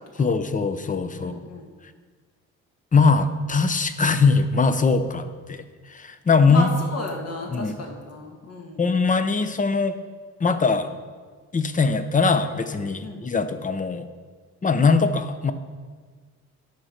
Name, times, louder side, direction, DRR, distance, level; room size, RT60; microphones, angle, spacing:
voice 1, 0.2-1.4 2.9-6.7 7.5-7.7 8.8-10.0 10.4-10.9 11.5-14.1 14.6-15.5, left 4 dB, 25° left, 10 dB, 0.7 m, -21 dB
voice 2, 1.2-1.7 6.5-8.9 13.0-13.3, left 2 dB, 55° left, 1 dB, 1.9 m, -33 dB
10.5 x 4.3 x 6.5 m, 1.5 s
cardioid pair, 90°, 30 cm